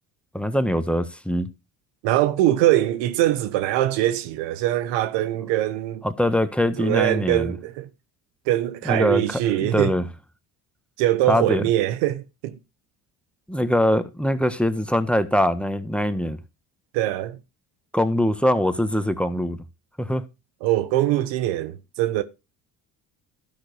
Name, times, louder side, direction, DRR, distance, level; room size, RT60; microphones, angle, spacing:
voice 1, 0.3-1.5 6.0-7.5 8.8-10.0 11.3-11.7 13.5-16.4 17.9-19.6 20.0-20.2, left 1 dB, 5° left, 1.4 m, -23 dB
voice 2, 2.0-6.0 6.8-7.9 8.5-10.0 11.0-12.6 16.9-17.4 20.6-22.2, right 14 dB, 85° right, 1.0 m, -22 dB
12.5 x 6.0 x 5.3 m
supercardioid pair, 70°, 42 cm